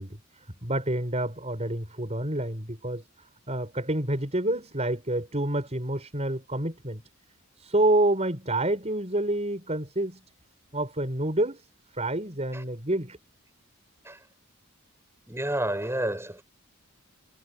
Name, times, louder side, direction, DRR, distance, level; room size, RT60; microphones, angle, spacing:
voice 1, 0.0-3.1 3.5-7.0 7.6-10.2 10.7-11.6 11.9-13.2, right 1 dB, 30° right, 6.1 m, -28 dB
voice 2, 15.3-16.4, right 1 dB, 10° right, 7.9 m, -30 dB
head